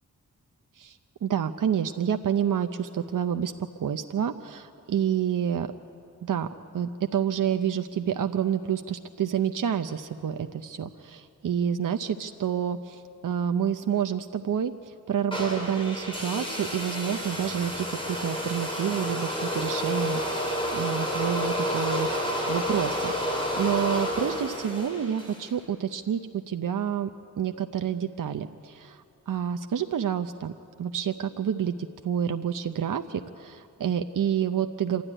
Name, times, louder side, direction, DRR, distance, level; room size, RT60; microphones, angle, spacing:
voice 1, 1.2-3.5 3.8-5.7 6.2-6.5 6.7-14.7 15.1-27.1 27.4-29.0 29.3-30.5 30.8-35.0, right 8 dB, 70° right, 7 dB, 0.7 m, -28 dB
sound 1, 15.3-25.5, equal, 15° left, 5.2 m, -30 dB
26.0 x 13.0 x 10.0 m, 2.4 s
wide cardioid pair, 95°, 33 cm